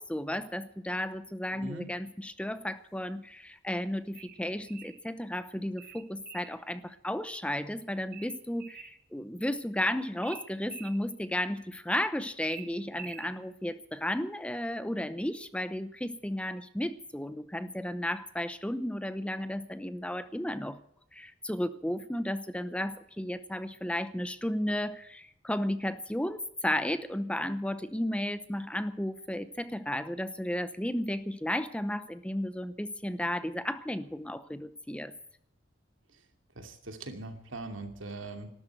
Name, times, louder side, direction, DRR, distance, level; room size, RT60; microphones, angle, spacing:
voice 1, 0.0-20.8 21.1-35.1, left 1 dB, 5° left, 12 dB, 0.8 m, -33 dB
voice 2, 1.5-1.9 36.6-38.5, right 2 dB, 85° right, 6 dB, 2.7 m, -41 dB
sound 1, 4.1-5.0 5.8-6.6 8.1-9.0 10.2-11.0 12.4-13.3, right 9 dB, 50° right, 1.6 m, -47 dB
13.0 x 13.0 x 7.9 m, 0.72 s
head